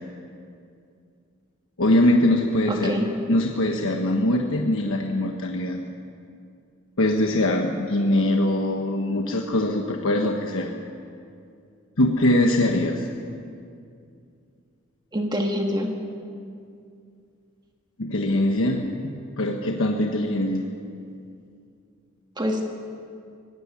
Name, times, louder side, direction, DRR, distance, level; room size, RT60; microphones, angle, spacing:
voice 1, 1.8-2.9 3.3-5.8 7.0-10.7 12.0-13.1 18.0-20.7, left 1 dB, 65° left, 2 dB, 1.3 m, -22 dB
voice 2, 2.7-3.1 15.1-15.9 22.4-22.6, equal, 20° right, 2 dB, 1.6 m, -25 dB
18.0 x 16.0 x 9.9 m, 2.4 s
head